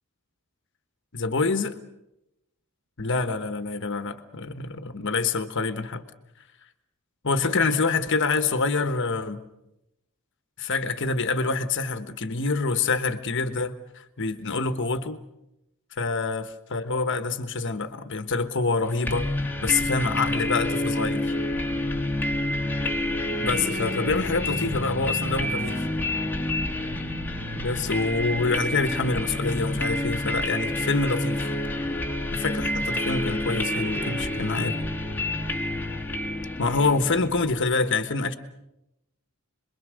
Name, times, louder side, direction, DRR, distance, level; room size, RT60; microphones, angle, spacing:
voice 1, 1.1-1.8 3.0-6.0 7.2-9.4 10.6-15.2 16.0-19.3 19.6-21.3 23.4-25.9 27.6-31.5 32.3-34.8 36.6-38.3, left 3 dB, 55° left, 1.3 m, -26 dB
sound 1, 19.1-37.7, left 1 dB, 10° left, 1.9 m, -28 dB
27.0 x 22.0 x 6.4 m
head